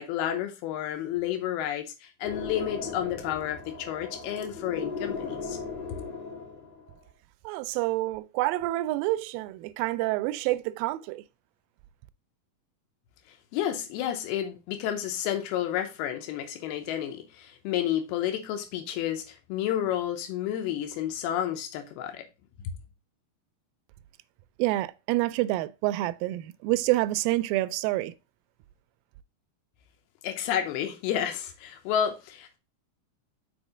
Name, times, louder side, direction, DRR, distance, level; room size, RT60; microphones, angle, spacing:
voice 1, 0.0-5.6 13.3-22.3 22.6-22.7 30.2-32.6, left 10 dB, 85° left, 2.8 m, -31 dB
sound 1, 2.2-6.9, left 5 dB, 60° left, 2.9 m, -37 dB
voice 2, 7.5-11.2 24.6-28.1, right 17 dB, 80° right, 2.1 m, -28 dB
6.2 x 4.4 x 4.9 m
omnidirectional pair, 4.4 m